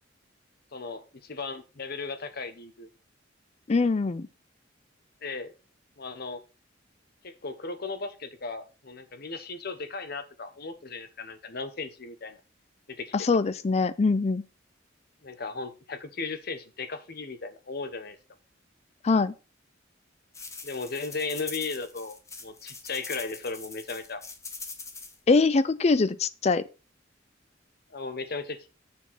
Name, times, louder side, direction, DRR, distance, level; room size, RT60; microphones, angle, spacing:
voice 1, 0.7-2.9 5.2-5.5 6.0-6.4 7.2-12.4 12.9-13.3 15.2-18.2 20.6-24.2 27.9-28.7, left 4 dB, 55° left, 1.0 m, -36 dB
voice 2, 3.7-4.3 13.1-14.4 19.0-19.3 25.3-26.7, left 4 dB, 35° left, 0.4 m, -23 dB
sound 1, 20.3-25.2, left 4 dB, 15° left, 0.9 m, -42 dB
7.0 x 4.6 x 5.6 m
head